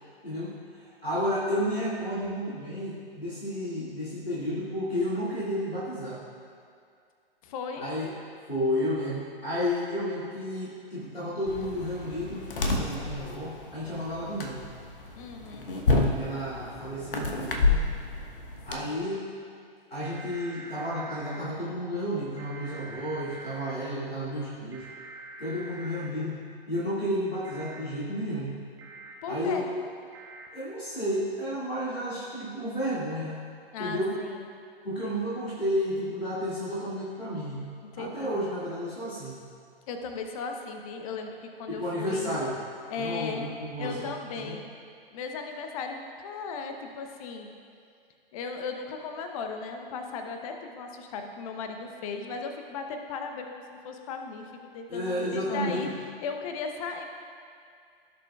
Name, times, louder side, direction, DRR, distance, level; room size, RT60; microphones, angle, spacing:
voice 1, 0.2-6.2 7.8-8.1 8.5-14.6 16.2-18.0 18.6-19.2 19.9-24.9 25.4-26.4 26.7-28.5 29.3-29.6 30.5-33.4 33.8-34.1 34.8-37.6 38.0-39.4 41.7-42.5 43.0-44.1 44.3-44.6 54.9-55.9, equal, 90° left, -10 dB, 2.2 m, -32 dB
voice 2, 7.4-7.9 15.2-15.7 18.8-19.2 29.2-29.7 33.7-34.5 37.9-38.3 39.9-42.4 42.9-43.5 43.8-44.7 45.1-47.5 48.3-55.9 56.2-57.0, left 4 dB, 35° left, 4 dB, 0.9 m, -36 dB
sound 1, 11.5-18.8, left 3 dB, 65° left, 1.1 m, -29 dB
sound 2, 20.0-21.4 22.4-23.7 24.7-26.1 27.4-27.8 28.8-29.1 30.1-30.5, right 3 dB, 10° right, 0.6 m, -45 dB
16.5 x 6.7 x 2.4 m, 2.3 s
figure-of-eight pair, 110°, 29 cm